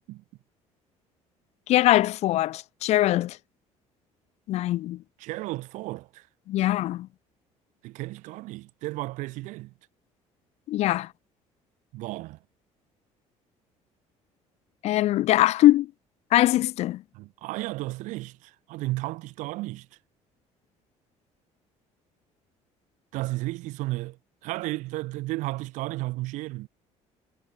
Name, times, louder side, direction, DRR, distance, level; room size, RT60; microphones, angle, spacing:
voice 1, 1.7-3.4 4.5-5.0 6.5-7.1 10.7-11.1 14.8-15.9 16.3-17.0, left 15 dB, 60° left, 5.7 m, -22 dB
voice 2, 5.2-6.3 7.8-9.7 11.9-12.4 17.1-19.9 23.1-24.2 24.4-26.7, right 19 dB, 80° right, 5.7 m, -33 dB
cardioid pair, 165°, 13 cm